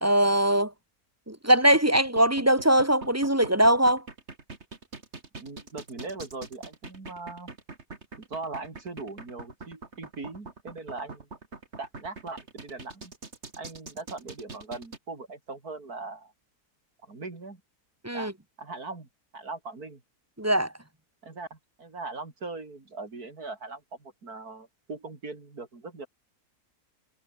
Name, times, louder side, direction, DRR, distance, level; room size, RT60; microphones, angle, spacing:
voice 1, 0.0-0.7 1.3-4.0 18.0-18.3 20.4-20.7, right 1 dB, 10° right, 1.3 m, -21 dB
sound 1, 1.5-15.0, right 3 dB, 45° right, 3.0 m, -43 dB
voice 2, 5.4-7.5 8.2-11.3 11.8-13.1 13.6-16.3 17.0-17.6 18.1-18.3 18.6-20.0 21.2-26.1, right 3 dB, 70° right, 4.2 m, -40 dB
omnidirectional pair, 1.7 m